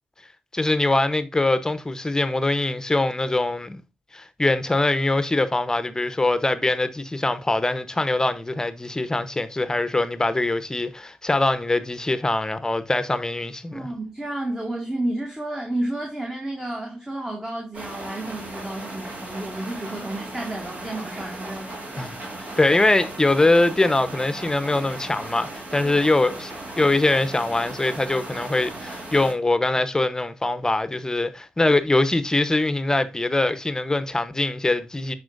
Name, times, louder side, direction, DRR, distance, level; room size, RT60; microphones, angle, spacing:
voice 1, 0.5-3.8 4.1-13.9 22.0-22.1 22.4-35.2, left 2 dB, 20° left, 1.0 m, -23 dB
voice 2, 13.7-21.9 25.8-25.9, right 1 dB, 20° right, 2.1 m, -31 dB
sound 1, 17.7-29.3, right 2 dB, 45° right, 2.9 m, -37 dB
10.5 x 4.4 x 2.6 m
cardioid pair, 60°, 3 cm